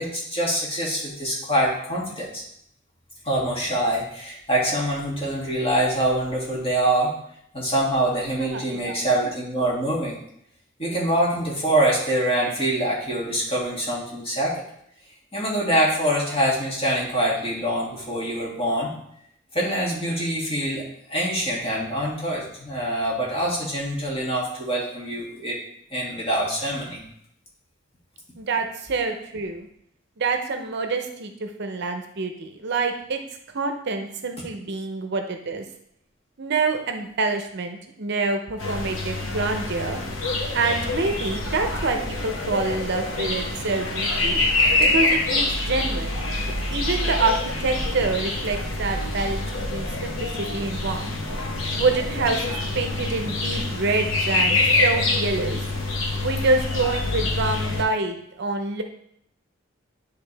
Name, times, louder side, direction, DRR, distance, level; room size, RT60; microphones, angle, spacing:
voice 1, 0.0-2.4 3.2-7.1 7.5-10.2 10.8-14.6 15.3-18.9 19.5-25.6 25.9-27.0, right 1 dB, 30° left, -5 dB, 2.2 m, -24 dB
voice 2, 8.4-9.0 28.3-29.7 30.2-33.2 33.5-35.6 36.4-40.0 40.5-44.4 44.9-46.2 46.7-49.4 49.7-51.2 51.8-55.6 56.2-58.8, right 3 dB, 60° right, 6 dB, 0.7 m, -26 dB
sound 1, 38.6-57.8, left 2 dB, 85° left, 1.1 m, -26 dB
10.0 x 3.5 x 3.4 m, 0.71 s
head